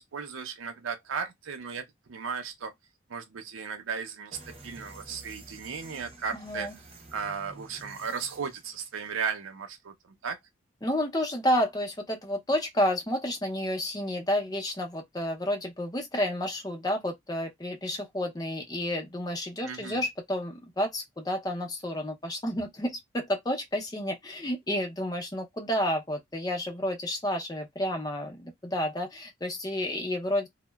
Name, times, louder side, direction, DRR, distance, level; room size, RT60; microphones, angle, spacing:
voice 1, 0.0-2.7 3.1-6.7 7.1-9.9 10.2-10.4 19.6-20.0, right 6 dB, 90° right, 0.5 m, -35 dB
sound 1, 4.3-9.1, right 2 dB, 30° right, 0.6 m, -50 dB
voice 2, 6.3-6.8 10.8-30.5, left 1 dB, 20° left, 0.6 m, -30 dB
2.7 x 2.1 x 2.2 m
head